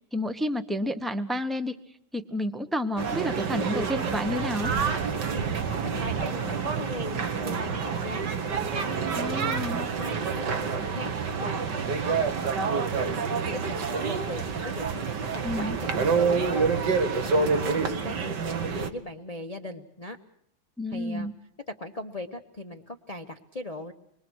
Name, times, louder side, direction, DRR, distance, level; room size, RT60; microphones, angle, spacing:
voice 1, 0.0-1.8 2.1-4.7 9.2-9.9 15.4-15.8 20.8-21.3, left 1 dB, ahead, 10 dB, 0.6 m, -30 dB
sound 1, 3.0-18.9, right 5 dB, 60° right, 2.1 m, -28 dB
voice 2, 5.8-9.2 9.9-11.1 11.4-20.2 20.9-21.3 21.7-23.9, left 1 dB, 30° left, 5 dB, 0.7 m, -40 dB
26.0 x 22.5 x 6.3 m, 0.70 s
omnidirectional pair, 2.2 m